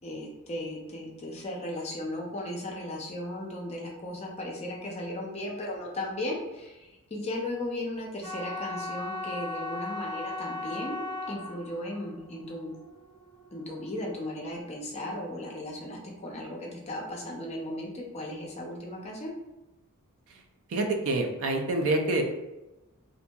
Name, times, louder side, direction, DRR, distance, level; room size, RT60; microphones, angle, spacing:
voice 1, 0.0-12.7 13.5-19.3, left 1 dB, 30° left, -1 dB, 0.4 m, -36 dB
sound 1, 8.2-14.4, left 3 dB, 85° right, 0.8 m, -37 dB
voice 2, 20.7-22.2, right 2 dB, 65° right, 3 dB, 0.4 m, -27 dB
2.7 x 2.5 x 2.2 m, 1.0 s
head